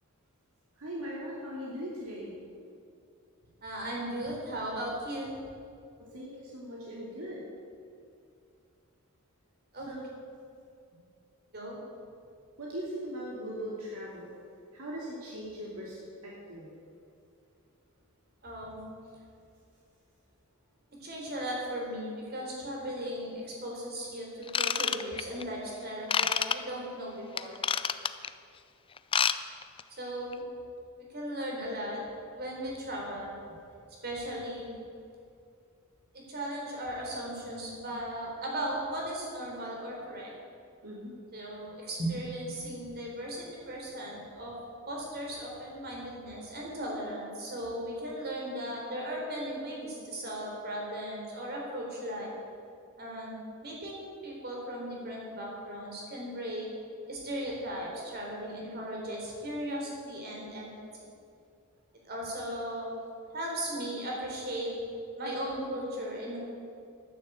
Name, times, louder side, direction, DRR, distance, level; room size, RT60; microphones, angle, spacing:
voice 1, 0.8-2.3 6.1-7.4 9.9-10.0 12.6-14.3 14.7-16.7 40.8-41.1, equal, 70° right, -5 dB, 2.5 m, -39 dB
voice 2, 3.6-5.3 9.7-9.9 11.5-11.8 18.4-18.9 21.0-27.6 30.0-30.4 31.0-32.0 32.3-33.3 34.0-34.7 36.3-40.3 41.3-44.6 44.9-52.3 53.0-56.7 57.1-60.7 62.0-62.9 63.3-64.7 65.2-66.4, right 1 dB, 45° right, -2 dB, 4.0 m, -37 dB
Ratchet pawl / Tools, 24.5-25.4 26.1-26.6 27.4-28.3 29.0-29.4 29.6-29.8 30.3-30.4, left 7 dB, 25° left, 0.4 m, -27 dB
12.0 x 10.0 x 8.1 m, 2.4 s
head